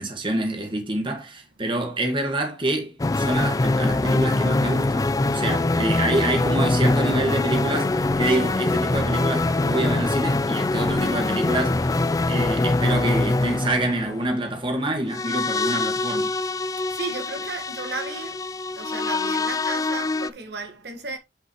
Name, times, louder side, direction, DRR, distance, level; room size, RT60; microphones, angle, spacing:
voice 1, 0.0-12.0 12.3-16.3, right 1 dB, 30° right, 1.6 m, -26 dB
sound 1, 3.0-20.3, left 2 dB, 20° left, 0.3 m, -23 dB
voice 2, 16.9-18.4 18.8-21.2, right 3 dB, 70° right, 1.6 m, -34 dB
8.9 x 5.4 x 3.0 m
head